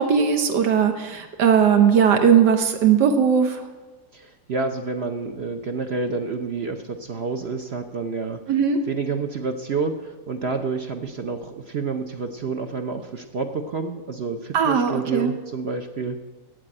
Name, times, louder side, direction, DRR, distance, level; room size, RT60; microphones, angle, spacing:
voice 1, 0.0-3.6 8.5-8.8 14.5-15.3, right 7 dB, 85° right, 6 dB, 1.6 m, -18 dB
voice 2, 4.1-8.4 8.9-16.3, right 4 dB, 50° right, 6 dB, 0.8 m, -29 dB
10.0 x 8.0 x 8.8 m, 1.2 s
omnidirectional pair, 1.8 m